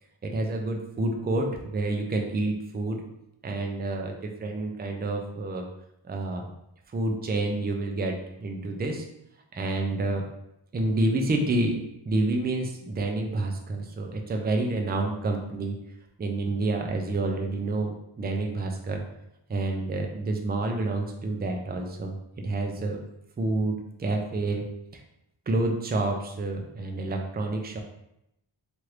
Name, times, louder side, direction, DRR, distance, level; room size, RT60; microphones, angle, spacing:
voice 1, 0.2-3.0 3.4-5.7 6.0-6.4 6.9-9.0 9.5-10.3 10.7-15.8 16.2-19.0 19.5-23.0 23.4-24.7 24.9-25.0 25.5-27.8, right 2 dB, 20° right, 2 dB, 0.3 m, -28 dB
2.9 x 2.5 x 3.1 m, 0.81 s
wide cardioid pair, 125°, 47 cm